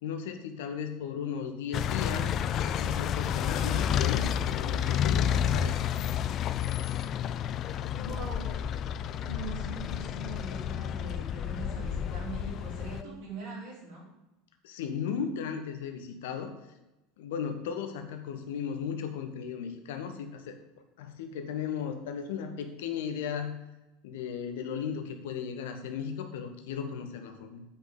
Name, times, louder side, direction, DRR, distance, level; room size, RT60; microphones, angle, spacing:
voice 1, 0.0-2.3 2.6-5.8 14.6-16.6 17.2-20.6 21.0-23.5 24.0-27.6, left 7 dB, 60° left, 7 dB, 1.4 m, -36 dB
sound 1, 1.7-13.0, left 9 dB, 35° left, 0.5 m, -30 dB
voice 2, 7.9-8.5 9.3-14.0, right 3 dB, 55° right, -10 dB, 4.4 m, -42 dB
8.7 x 6.1 x 8.2 m, 0.99 s
figure-of-eight pair, 75°, 0 cm